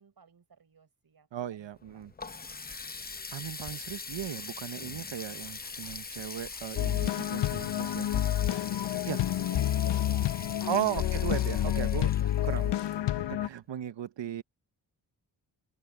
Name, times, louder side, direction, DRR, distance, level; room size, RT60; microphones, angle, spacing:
voice 1, 0.0-2.4 7.7-9.1 9.5-10.8 11.6-13.2, right 6 dB, 55° right, 5.6 m, -57 dB
voice 2, 1.3-2.1 3.3-8.2 9.1-9.2 10.6-12.1 12.4-12.8 13.3-14.4, right 11 dB, 75° right, 0.9 m, -36 dB
Water tap faucet, 1.7-13.4, left 4 dB, 20° left, 0.6 m, -43 dB
Writing, 5.2-11.4, equal, ahead, 6.7 m, -58 dB
sound 1, 6.8-13.5, left 12 dB, 70° left, 0.6 m, -29 dB
wide cardioid pair, 155°, 44 cm